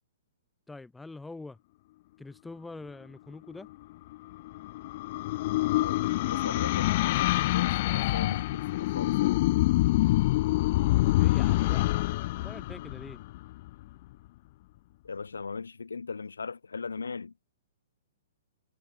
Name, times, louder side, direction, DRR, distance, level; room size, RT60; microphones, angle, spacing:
voice 1, 0.7-1.6 2.2-3.7 11.0-11.9 12.4-13.2, left 3 dB, 5° left, 3.6 m, -44 dB
sound 1, 4.1-13.7, left 18 dB, 45° left, 2.1 m, -26 dB
voice 2, 6.3-9.4 15.0-17.3, left 5 dB, 75° left, 3.6 m, -39 dB
figure-of-eight pair, 115°, 0 cm